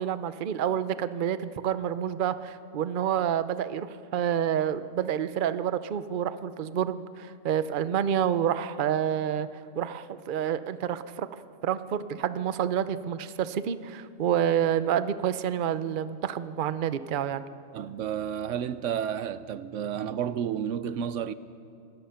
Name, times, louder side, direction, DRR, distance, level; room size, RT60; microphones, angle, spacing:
voice 1, 0.0-9.5 9.8-11.3 11.6-17.5, right 9 dB, 50° right, 0.7 m, -28 dB
voice 2, 17.7-21.3, right 8 dB, 80° right, 1.0 m, -31 dB
26.0 x 19.5 x 5.8 m
omnidirectional pair, 1.3 m